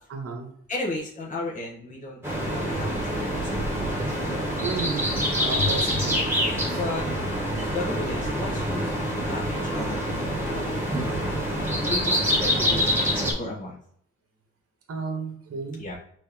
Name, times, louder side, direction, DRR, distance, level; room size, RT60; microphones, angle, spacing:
voice 1, 0.1-0.5 4.6-5.1 5.4-6.2 6.7-6.8 14.9-15.8, right 4 dB, 50° right, 2 dB, 1.2 m, -33 dB
voice 2, 0.7-2.2 2.5-3.9 4.2-4.5 5.6-6.0 6.7-10.5 11.8-13.1 13.4-13.8 15.8-15.9, left 2 dB, 25° left, -3 dB, 1.2 m, -34 dB
sound 1, 2.2-13.3, equal, 10° right, 1.6 m, -26 dB
4.6 x 3.0 x 3.5 m, 0.64 s
cardioid pair, 90°, 30 cm